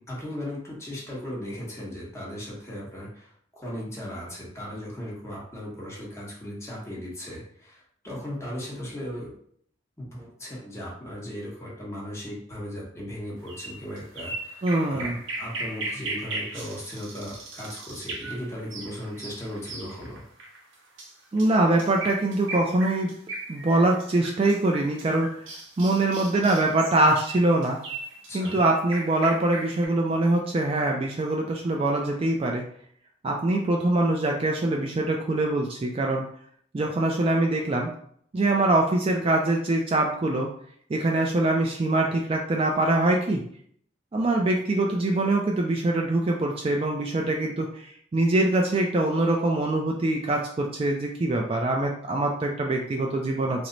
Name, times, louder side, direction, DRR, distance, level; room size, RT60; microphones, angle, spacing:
voice 1, 0.1-9.3 10.0-15.1 15.4-20.3 28.3-28.6, equal, 15° left, -5 dB, 1.0 m, -37 dB
sound 1, 13.5-29.9, right 2 dB, 85° right, 0.8 m, -38 dB
voice 2, 14.6-15.2 21.3-23.2 23.5-25.3 25.8-27.8 28.3-32.6 33.2-36.2 36.7-37.9 38.3-40.5 40.9-43.4 44.1-53.7, right 2 dB, 30° right, 1 dB, 0.3 m, -23 dB
3.1 x 2.0 x 3.8 m, 0.63 s
head